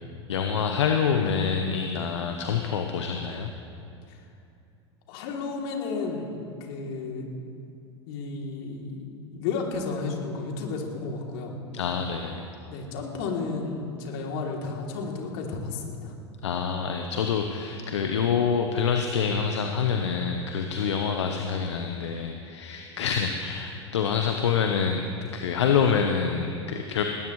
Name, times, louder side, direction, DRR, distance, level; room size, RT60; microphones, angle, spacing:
voice 1, 0.3-3.5 11.7-12.4 16.4-25.1 25.3-27.0, left 6 dB, 75° left, 4 dB, 1.0 m, -26 dB
voice 2, 5.1-6.3 6.6-7.3 8.1-11.5 12.7-16.1, left 4 dB, 60° left, 0 dB, 3.0 m, -32 dB
19.5 x 18.0 x 3.2 m, 2.5 s
hypercardioid pair, 85°, 15 cm